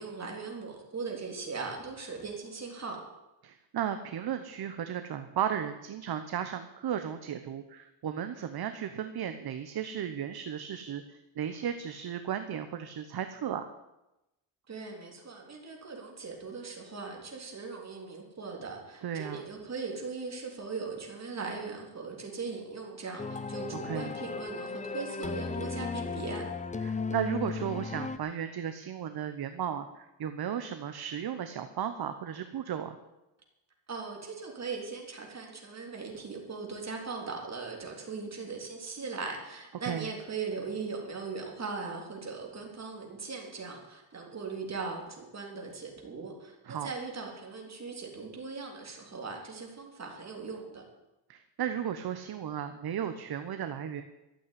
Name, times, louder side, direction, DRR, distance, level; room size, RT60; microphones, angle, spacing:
voice 1, 0.0-3.0 14.7-26.4 33.9-50.9, right 4 dB, 30° right, 1 dB, 3.6 m, -39 dB
voice 2, 3.4-13.7 19.0-19.4 23.8-24.1 26.8-33.0 39.8-40.1 46.7-46.9 51.3-54.0, right 9 dB, 50° right, 9 dB, 1.0 m, -35 dB
sound 1, 23.2-28.2, left 4 dB, 15° left, 0.5 m, -35 dB
13.0 x 8.6 x 9.5 m, 0.97 s
cardioid pair, 140°, 49 cm